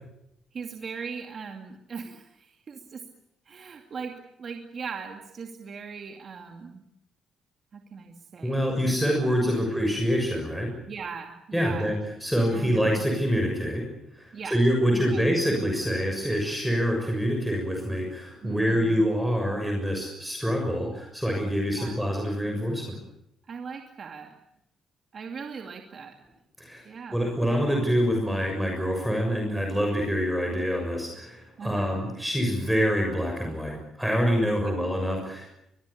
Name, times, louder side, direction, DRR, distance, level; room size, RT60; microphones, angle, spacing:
voice 1, 0.5-3.0 3.5-6.9 7.7-8.7 9.5-9.7 10.9-11.9 12.5-13.0 14.3-14.6 14.9-15.2 18.4-19.1 21.7-22.0 23.4-24.4 25.1-26.2 26.8-27.3 31.6-32.0 34.6-34.8, right 5 dB, 50° right, 4 dB, 2.4 m, -39 dB
voice 2, 8.4-10.8 11.5-11.9 12.2-23.0 26.6-26.9 27.1-35.5, equal, 5° right, 2 dB, 6.7 m, -26 dB
23.0 x 22.5 x 8.6 m, 0.82 s
cardioid pair, 90°, 0 cm